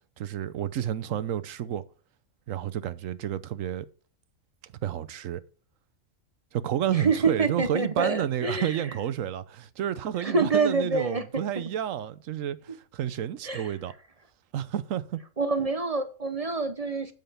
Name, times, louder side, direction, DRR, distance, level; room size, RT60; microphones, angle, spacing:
voice 1, 0.2-1.8 2.5-3.9 4.8-5.4 6.5-13.9 14.5-15.2, right 10 dB, 90° right, 1.1 m, -30 dB
voice 2, 6.9-8.9 10.2-11.7 13.4-13.8 15.4-17.1, right 4 dB, 35° right, 0.7 m, -27 dB
8.9 x 7.9 x 3.4 m
omnidirectional pair, 1.3 m